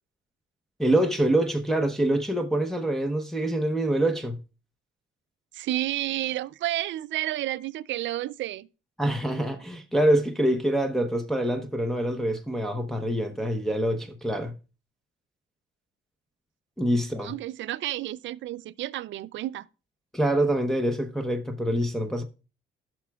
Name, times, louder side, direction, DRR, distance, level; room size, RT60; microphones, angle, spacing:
voice 1, 0.8-4.4 9.0-14.5 16.8-17.3 20.1-22.2, right 1 dB, ahead, 0.8 m, -25 dB
voice 2, 5.5-8.7 17.2-19.7, right 14 dB, 70° right, 0.4 m, -31 dB
16.5 x 6.0 x 2.3 m
cardioid pair, 90°, 20 cm